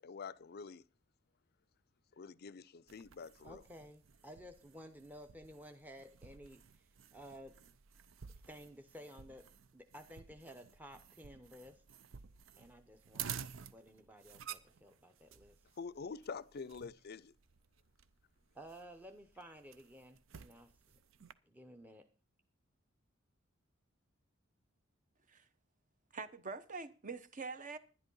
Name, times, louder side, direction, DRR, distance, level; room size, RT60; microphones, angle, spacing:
voice 1, 0.0-0.8 2.2-3.6 15.8-17.3, left 5 dB, 50° left, 0.5 m, -46 dB
sound 1, 2.9-21.3, right 8 dB, 70° right, 0.6 m, -52 dB
voice 2, 3.4-7.5 8.5-9.5 9.7-11.8 12.6-13.4 13.7-15.6 18.5-20.7 21.5-22.1, equal, 10° right, 0.7 m, -54 dB
voice 3, 26.1-27.8, right 4 dB, 40° right, 0.9 m, -44 dB
11.0 x 10.5 x 5.4 m
head